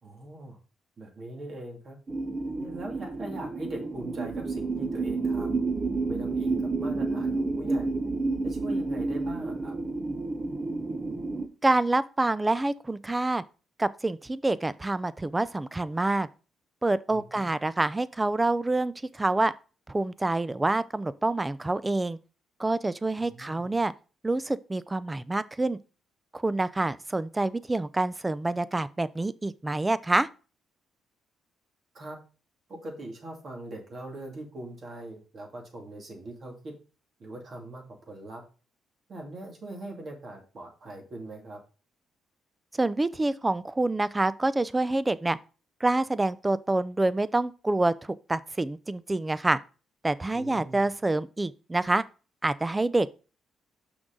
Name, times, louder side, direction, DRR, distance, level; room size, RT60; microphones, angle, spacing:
voice 1, 0.0-0.6 1.0-2.0 2.6-5.7 6.1-8.0 8.4-9.8 17.1-17.5 23.2-23.7 31.9-32.2 32.7-36.7 37.2-38.4 39.1-41.6 50.3-50.9, right 1 dB, 50° right, 2.6 m, -41 dB
sound 1, 2.1-11.5, right 3 dB, 30° right, 1.0 m, -30 dB
voice 2, 11.6-13.4 13.8-16.3 16.8-19.5 19.9-22.2 22.6-23.9 24.2-25.8 26.3-30.3 42.7-45.4 45.8-49.6 50.0-52.0 52.4-53.1, right 2 dB, 15° right, 0.5 m, -27 dB
6.3 x 6.0 x 3.8 m
cardioid pair, 90°, 0 cm